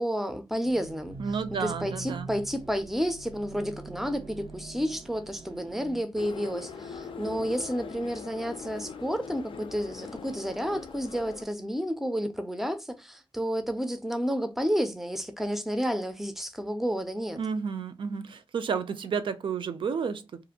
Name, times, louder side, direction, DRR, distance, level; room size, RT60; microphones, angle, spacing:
voice 1, 0.0-1.2 1.6-17.4, equal, 5° right, 0.4 m, -31 dB
sound 1, 0.6-6.0, right 3 dB, 80° right, 0.9 m, -44 dB
voice 2, 1.2-2.3 17.3-20.4, right 6 dB, 65° right, 0.4 m, -31 dB
sound 2, 6.2-11.4, left 5 dB, 65° left, 0.4 m, -41 dB
2.5 x 2.4 x 2.8 m
wide cardioid pair, 145°, 9 cm